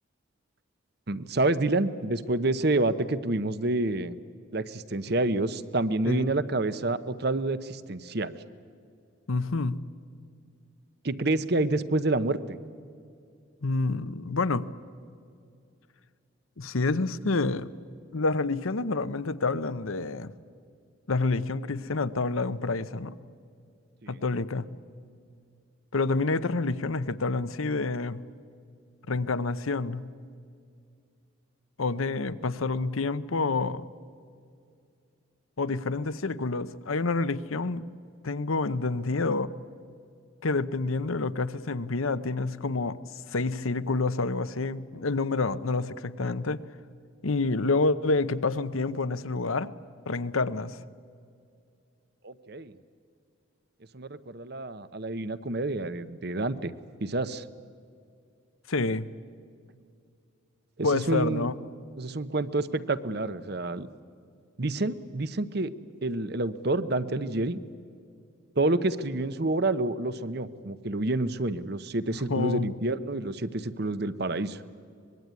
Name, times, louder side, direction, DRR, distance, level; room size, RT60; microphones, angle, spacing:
voice 1, 1.1-4.1 4.5-8.4 11.0-12.6 24.0-24.2 52.2-52.7 53.9-56.7 57.0-57.4 60.8-61.5 62.0-63.9 64.6-65.7 66.0-67.6 68.6-74.6, right 2 dB, 50° right, 14 dB, 0.9 m, -28 dB
voice 2, 9.3-9.8 13.6-14.6 16.6-17.7 18.1-20.3 21.1-23.2 24.1-24.7 25.9-28.2 29.1-30.0 31.8-33.8 35.6-37.8 38.2-39.5 40.4-43.0 43.3-46.6 47.2-49.7 50.1-50.8 58.7-59.1 60.8-61.5 72.3-72.7, left 3 dB, 85° left, 14 dB, 0.9 m, -28 dB
24.5 x 21.5 x 9.5 m, 2.4 s
head